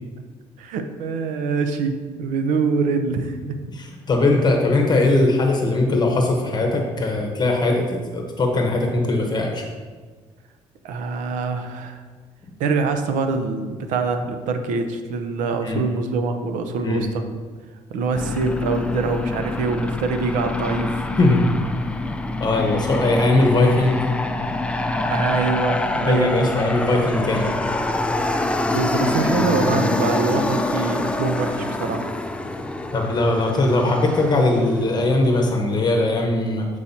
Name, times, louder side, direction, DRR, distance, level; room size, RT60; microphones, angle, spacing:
voice 1, 0.6-3.6 10.8-12.0 12.6-17.2 17.9-21.0 25.0-26.5 28.7-32.1, right 4 dB, 75° right, 7 dB, 0.6 m, -24 dB
voice 2, 3.7-9.6 15.6-15.8 16.8-17.1 21.2-21.6 22.4-24.0 26.1-27.5 28.7-28.8 32.9-36.7, left 2 dB, 30° left, 2 dB, 1.0 m, -20 dB
Aircraft, 18.1-35.6, left 2 dB, 10° left, 0.4 m, -26 dB
8.6 x 4.7 x 2.8 m, 1.5 s
supercardioid pair, 85°, 13 cm